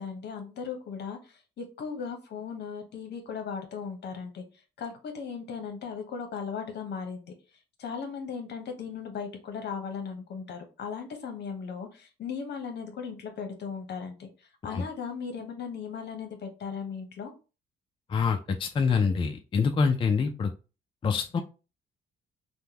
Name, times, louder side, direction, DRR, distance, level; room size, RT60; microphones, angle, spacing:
voice 1, 0.0-4.4 4.8-7.3 7.8-14.3 14.6-17.3, left 6 dB, 60° left, 5 dB, 0.9 m, -37 dB
voice 2, 18.1-20.5 21.0-21.4, left 5 dB, 25° left, 4 dB, 0.3 m, -26 dB
3.4 x 2.2 x 2.8 m, 0.32 s
cardioid pair, 90°, 20 cm